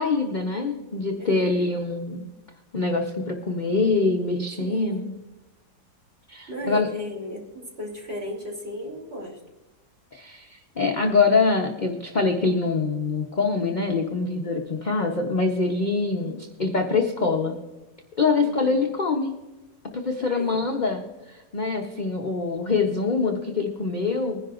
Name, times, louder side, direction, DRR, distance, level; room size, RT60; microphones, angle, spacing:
voice 1, 0.0-2.3 2.7-5.1 6.3-6.9 10.1-17.6 18.2-19.4 19.9-24.4, left 4 dB, 40° left, 2 dB, 0.7 m, -24 dB
voice 2, 1.2-1.8 4.6-5.1 6.5-9.4 16.0-16.5 18.4-18.8 20.2-20.6, equal, 35° right, -2 dB, 3.1 m, -36 dB
21.0 x 10.5 x 2.5 m, 1.0 s
omnidirectional pair, 1.9 m